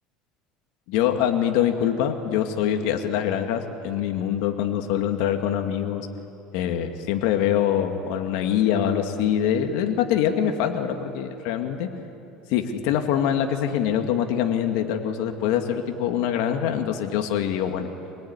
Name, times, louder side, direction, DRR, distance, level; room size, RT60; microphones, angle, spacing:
voice 1, 0.9-6.1 6.5-11.9 12.5-17.9, left 9 dB, 75° left, 5 dB, 2.0 m, -24 dB
24.5 x 19.5 x 9.7 m, 2.8 s
cardioid pair, 135°, 0 cm